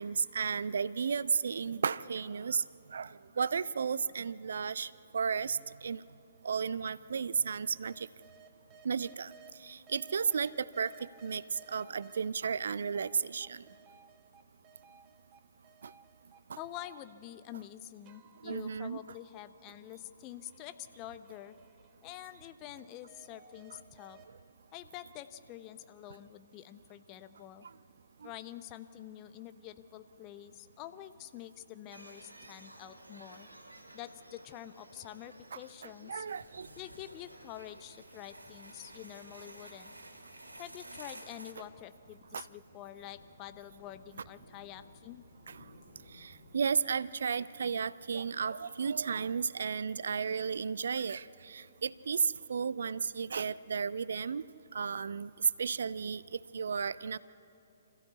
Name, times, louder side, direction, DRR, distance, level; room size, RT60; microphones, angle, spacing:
voice 1, 0.0-2.6 2.9-3.1 3.4-6.0 6.4-8.1 8.8-9.3 9.6-10.9 11.2-11.4 11.7-13.6 16.5-16.6 18.4-19.0 28.2-28.3 35.5-36.7 42.3-42.4 45.5-45.6 46.2-54.4 54.7-55.3 55.6-56.2 56.5-57.2, right 6 dB, 55° right, 19 dB, 0.4 m, -33 dB
sound 1, 6.4-6.5 7.1-9.5 9.9-12.3 12.7-15.4 15.6-17.7 18.0-22.7 23.1-24.2, right 5 dB, 25° right, 1.3 m, -60 dB
voice 2, 16.6-21.5 22.0-24.2 24.7-27.7 28.2-33.5 33.9-36.3 36.8-39.9 40.6-45.2, left 13 dB, 25° left, 11 dB, 0.7 m, -47 dB
sound 2, 31.9-41.5, right 1 dB, 75° right, 2.1 m, -53 dB
sound 3, 36.5-46.7, left 2 dB, 40° left, 4.4 m, -62 dB
26.0 x 15.0 x 8.3 m, 2.9 s
figure-of-eight pair, 125°, 0 cm